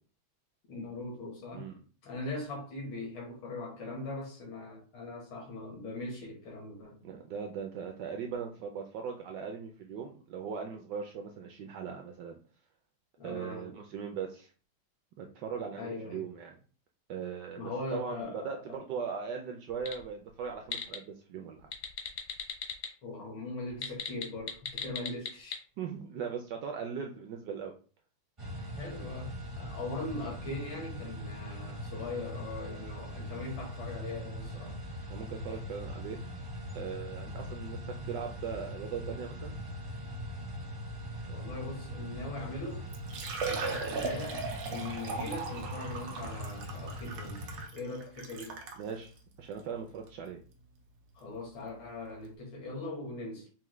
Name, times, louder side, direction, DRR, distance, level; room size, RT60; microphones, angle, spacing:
voice 1, 0.7-1.7 2.0-7.0 13.2-13.7 15.8-16.3 17.6-18.8 23.0-25.6 28.6-34.8 41.3-42.9 43.4-47.4 47.7-48.6 51.2-53.5, left 2 dB, 80° left, 2.1 m, -40 dB
voice 2, 7.0-12.4 13.2-14.5 15.2-16.5 17.1-21.7 25.8-27.8 35.1-36.2 36.7-37.8 38.1-39.6 48.8-50.4, right 6 dB, 75° right, 1.0 m, -39 dB
sound 1, 19.7-20.0 20.4-21.0 21.6-22.9 23.7-25.6, left 8 dB, 65° left, 1.0 m, -36 dB
sound 2, 28.4-47.7, equal, 40° right, 0.4 m, -41 dB
Liquid, 42.5-42.6 42.9-48.8 49.5-49.6 50.1-50.2 51.8-51.9 52.1-52.2, right 4 dB, 90° right, 1.6 m, -38 dB
5.6 x 2.1 x 3.1 m
omnidirectional pair, 2.2 m